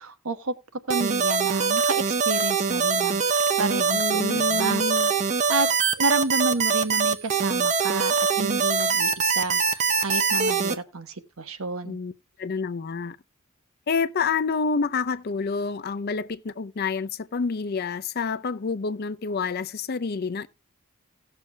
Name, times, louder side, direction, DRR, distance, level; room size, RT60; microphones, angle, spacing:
voice 1, 0.0-4.8 5.5-5.7 6.0-12.0, right 3 dB, 80° right, 1.1 m, -30 dB
sound 1, 0.9-10.7, right 5 dB, 35° right, 0.7 m, -23 dB
voice 2, 3.9-5.1 11.9-12.1 12.4-13.2 13.9-20.5, left 5 dB, 45° left, 0.5 m, -28 dB
18.0 x 6.8 x 2.2 m
head